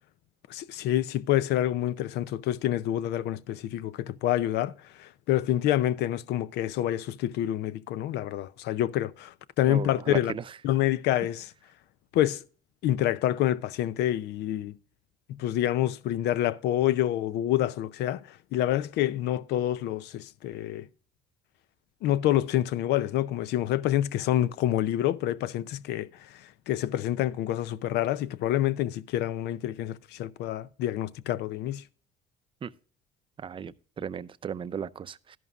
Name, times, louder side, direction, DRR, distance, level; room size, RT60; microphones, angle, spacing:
voice 1, 0.5-4.7 5.0-10.3 10.6-11.5 12.1-12.4 12.8-14.7 15.4-20.9 22.0-26.1 26.7-31.8, left 13 dB, 80° left, 0.5 m, -27 dB
voice 2, 9.6-10.4 32.6-32.7 33.4-35.4, right 7 dB, 30° right, 0.5 m, -35 dB
12.5 x 11.0 x 2.4 m
cardioid pair, 110°, 17 cm